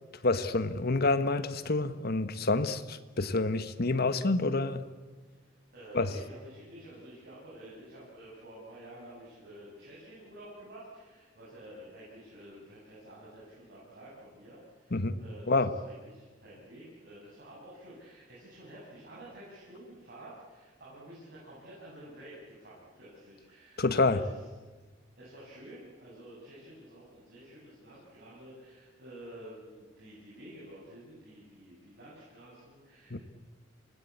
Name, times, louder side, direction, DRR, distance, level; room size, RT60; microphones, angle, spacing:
voice 1, 0.2-4.8 5.9-6.1 14.9-15.2 15.5-15.7 23.8-24.2 33.1-33.2, left 3 dB, 55° left, 11 dB, 1.4 m, -28 dB
voice 2, 5.7-24.3 25.2-33.2, right 1 dB, 55° right, -7 dB, 7.7 m, -50 dB
27.5 x 19.5 x 8.7 m, 1.3 s
head